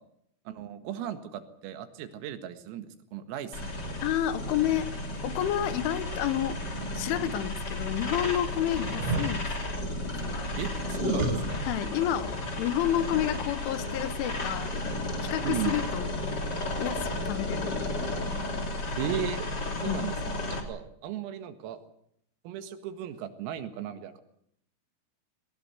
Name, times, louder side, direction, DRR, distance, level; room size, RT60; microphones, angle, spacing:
voice 1, 0.5-2.9 3.1-4.0 10.6-11.6 15.4-15.8 19.0-19.5 19.8-21.8 22.5-24.2, right 10 dB, 90° right, 9 dB, 4.4 m, -36 dB
sound 1, 3.5-20.6, left 2 dB, 25° left, 2.7 m, -33 dB
voice 2, 4.0-4.9 5.2-6.6 6.9-10.5 11.6-14.7 15.3-16.1 16.8-17.8 19.8-20.1, left 11 dB, 75° left, 14 dB, 3.3 m, -30 dB
sound 2, 8.8-9.4 11.2-11.9 12.2-12.3, right 3 dB, 75° right, 6.2 m, -32 dB
22.0 x 19.5 x 8.2 m, 0.71 s
omnidirectional pair, 5.9 m